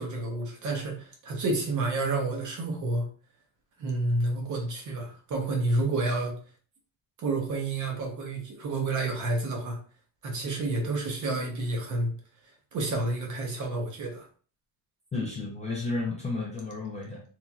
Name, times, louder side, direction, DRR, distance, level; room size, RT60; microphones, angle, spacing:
voice 1, 0.0-3.1 3.8-6.3 7.2-9.8 10.2-12.1 12.7-14.3, right 2 dB, 45° right, 1 dB, 0.8 m, -29 dB
voice 2, 15.1-17.2, left 3 dB, 20° left, -4 dB, 0.3 m, -32 dB
3.1 x 2.5 x 2.3 m, 0.41 s
cardioid pair, 170°, 43 cm